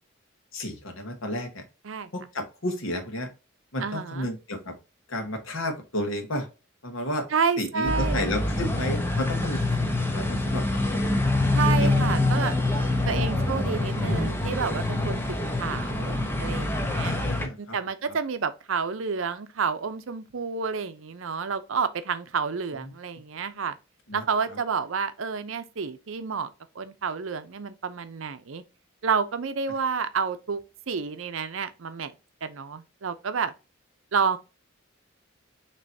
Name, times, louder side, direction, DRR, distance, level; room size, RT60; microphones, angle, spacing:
voice 1, 0.5-1.6 2.1-3.3 3.7-4.7 5.1-6.5 6.8-7.3 7.6-9.6 10.1-10.8 11.8-12.2 13.0-13.6 17.0-17.8 24.1-24.2, left 1 dB, 85° left, 1.3 m, -32 dB
voice 2, 3.8-4.3 7.3-8.3 11.5-12.5 13.1-17.2 17.6-23.8 24.1-26.5 26.8-28.6 29.0-30.6 30.9-32.1 32.4-33.5 34.1-34.4, right 5 dB, 80° right, 0.6 m, -29 dB
sound 1, 7.8-17.5, left 2 dB, 10° left, 0.7 m, -25 dB
6.6 x 3.0 x 2.7 m
head